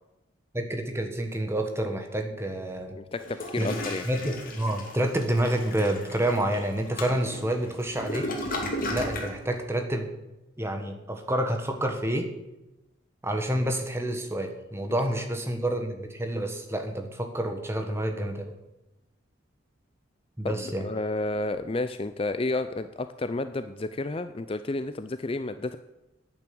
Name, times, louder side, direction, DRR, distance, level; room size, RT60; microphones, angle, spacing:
voice 1, 0.5-3.0 3.6-3.7 4.0-8.3 8.9-10.1 10.6-12.3 13.2-18.5 20.4-20.9, right 1 dB, 15° right, 4 dB, 1.4 m, -28 dB
voice 2, 3.0-4.1 20.4-25.8, left 2 dB, 30° left, 11 dB, 0.4 m, -31 dB
Toilet flush, 3.2-9.4, left 1 dB, 45° left, 2.3 m, -35 dB
10.5 x 9.0 x 7.8 m, 0.98 s
head